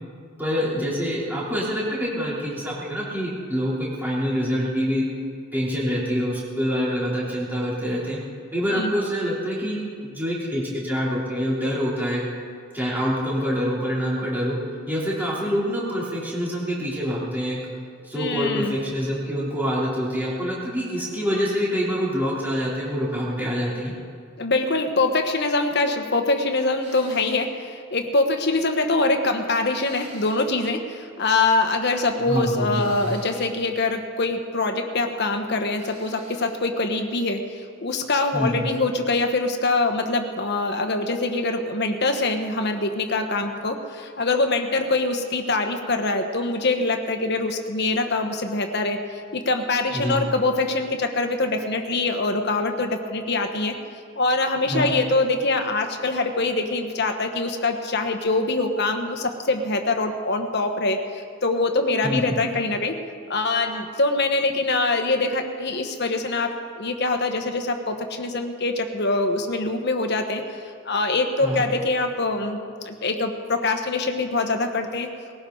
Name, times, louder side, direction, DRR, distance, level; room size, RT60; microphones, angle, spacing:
voice 1, 0.4-5.1 5.5-8.2 8.5-12.2 12.7-14.6 14.9-17.6 18.0-23.9 32.3-33.0 38.3-38.5 49.9-50.2 54.7-54.9 62.0-62.3 71.4-71.6, equal, 10° right, -6 dB, 3.3 m, -26 dB
voice 2, 18.1-18.8 24.4-37.4 37.8-53.7 54.2-63.0 63.3-70.4 70.8-72.6 72.8-75.1, left 2 dB, 50° left, 5 dB, 1.3 m, -24 dB
sound 1, 26.8-27.5 29.8-30.5 32.7-33.6 35.8-36.6, right 2 dB, 35° right, 3.9 m, -47 dB
20.5 x 17.0 x 3.9 m, 2.3 s
head